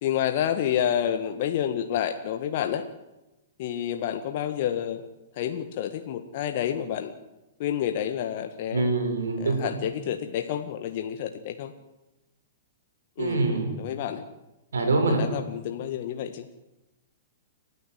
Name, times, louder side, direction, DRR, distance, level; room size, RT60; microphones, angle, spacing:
voice 1, 0.0-2.8 3.6-5.0 5.3-7.1 7.6-8.9 9.4-11.7 13.2-13.4 13.8-14.2 15.1-16.5, left 10 dB, 50° left, 7 dB, 1.6 m, -29 dB
voice 2, 8.7-9.6 13.2-13.7 14.7-15.2, right 3 dB, 75° right, 4 dB, 6.4 m, -24 dB
29.5 x 13.0 x 7.9 m, 0.97 s
figure-of-eight pair, 110°, 0 cm